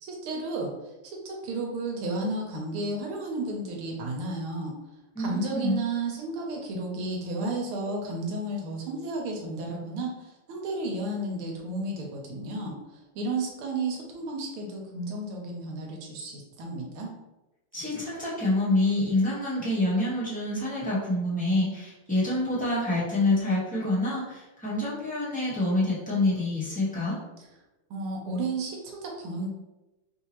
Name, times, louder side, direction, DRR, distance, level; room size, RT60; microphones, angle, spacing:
voice 1, 0.0-0.7 1.0-4.8 5.2-17.1 27.9-29.5, right 2 dB, 80° right, 0 dB, 1.6 m, -32 dB
voice 2, 5.1-5.8 17.7-27.2, left 2 dB, 5° left, -10 dB, 0.6 m, -27 dB
3.7 x 2.8 x 2.9 m, 1.0 s
omnidirectional pair, 2.4 m